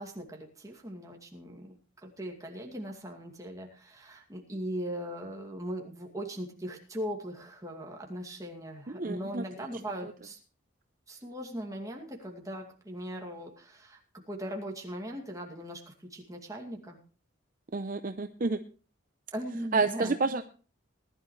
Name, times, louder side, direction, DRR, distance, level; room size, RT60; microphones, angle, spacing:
voice 1, 0.0-10.4 11.1-17.0 19.3-20.2, equal, 15° right, 1 dB, 2.4 m, -39 dB
voice 2, 8.9-9.4 17.7-18.6 19.7-20.4, right 3 dB, 40° right, 9 dB, 0.6 m, -29 dB
19.5 x 11.5 x 3.2 m, 0.39 s
head